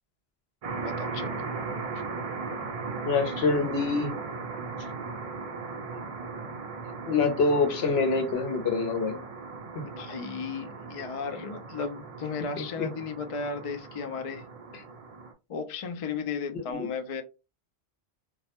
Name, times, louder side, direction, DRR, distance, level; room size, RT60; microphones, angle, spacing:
sound 1, 0.6-15.3, right 4 dB, 50° right, 0.4 m, -38 dB
voice 1, 0.8-1.4 9.8-14.5 15.5-17.2, left 5 dB, 55° left, 0.4 m, -35 dB
voice 2, 3.1-4.1 5.9-6.0 7.1-9.1 12.8-12.9 16.5-16.9, left 4 dB, 75° left, 0.9 m, -26 dB
2.3 x 2.1 x 2.8 m
omnidirectional pair, 1.1 m